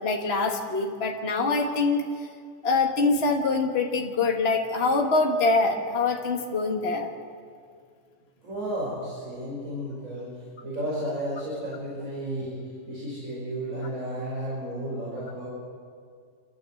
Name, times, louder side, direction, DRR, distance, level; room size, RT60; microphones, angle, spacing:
voice 1, 0.0-2.0 2.6-7.1, left 3 dB, 40° left, 1 dB, 1.9 m, -24 dB
voice 2, 8.4-10.3 10.6-12.5 12.9-15.5, right 1 dB, 55° right, -7 dB, 6.3 m, -33 dB
28.5 x 13.0 x 7.9 m, 2.1 s
omnidirectional pair, 1.7 m